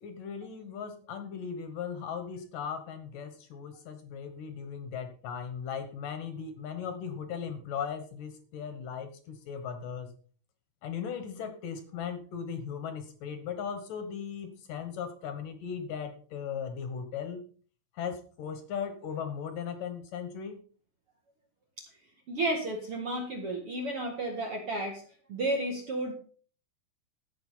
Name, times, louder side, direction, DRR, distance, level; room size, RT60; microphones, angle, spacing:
voice 1, 0.0-10.1 10.8-17.4 17.9-20.6, left 7 dB, 70° left, 8 dB, 2.1 m, -38 dB
voice 2, 22.3-25.0 25.3-26.1, right 1 dB, 60° right, 2 dB, 1.5 m, -32 dB
14.5 x 6.9 x 5.6 m, 0.44 s
omnidirectional pair, 5.5 m